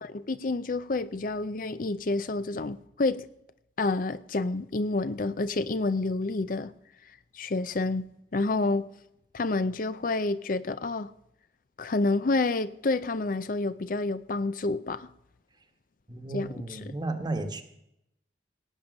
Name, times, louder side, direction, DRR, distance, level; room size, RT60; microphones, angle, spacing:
voice 1, 0.0-3.3 3.8-6.7 7.3-8.9 9.3-11.1 11.8-15.1 16.3-16.8, left 3 dB, 50° left, 0.5 m, -29 dB
voice 2, 16.1-17.6, right 2 dB, 25° right, 1.3 m, -33 dB
18.5 x 8.7 x 6.4 m
head